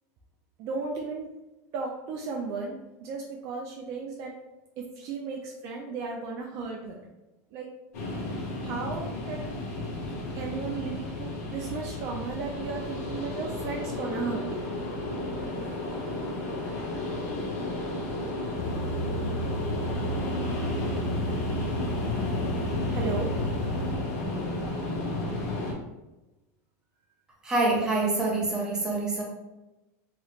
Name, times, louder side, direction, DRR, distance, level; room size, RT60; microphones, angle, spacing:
voice 1, 0.6-1.3 1.7-4.3 4.8-7.0 7.5-7.7 8.3-9.5 10.3-14.8 22.9-23.3, right 4 dB, 40° right, 0 dB, 0.3 m, -35 dB
sound 1, 7.9-25.7, left 2 dB, 85° left, 1.0 m, -32 dB
sound 2, 18.6-24.0, right 1 dB, 65° left, 0.4 m, -33 dB
voice 2, 27.4-29.2, right 2 dB, 10° right, -3 dB, 0.7 m, -26 dB
3.1 x 2.9 x 2.4 m, 1.0 s
supercardioid pair, 160°, 8 cm